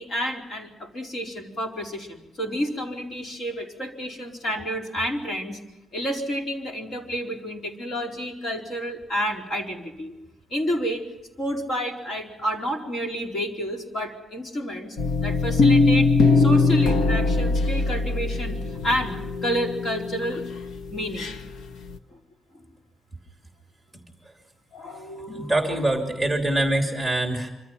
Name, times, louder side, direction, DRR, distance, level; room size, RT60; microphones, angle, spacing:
voice 1, 0.0-5.6 5.9-10.1 10.5-11.0 11.4-15.0 15.2-16.1 16.3-20.4 20.9-21.3 22.1-22.2 24.7-25.7, equal, 45° left, 2 dB, 4.5 m, -30 dB
sound 1, 15.0-21.4 21.9-22.0, left 3 dB, 90° left, 1.4 m, -22 dB
voice 2, 25.3-27.5, right 1 dB, ahead, 2 dB, 3.1 m, -24 dB
26.0 x 25.5 x 5.8 m, 1.0 s
wide cardioid pair, 165°, 0 cm